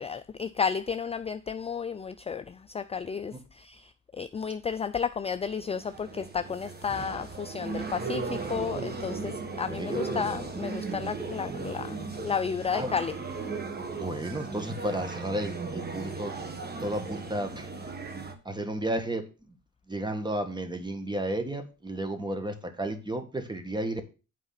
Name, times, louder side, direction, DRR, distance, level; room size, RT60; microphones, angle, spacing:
voice 1, 0.0-2.4 2.7-3.3 3.7-3.8 4.2-8.2 8.5-9.3 9.6-12.0 12.2-13.1, left 6 dB, 20° left, 0.4 m, -32 dB
sound 1, 5.6-18.3, right 4 dB, 30° right, 1.6 m, -36 dB
voice 2, 9.7-10.4 12.7-12.9 13.9-16.3 16.8-17.7 18.4-19.3 19.9-24.0, right 1 dB, 15° right, 1.6 m, -33 dB
8.3 x 4.9 x 5.8 m
cardioid pair, 90°, 30 cm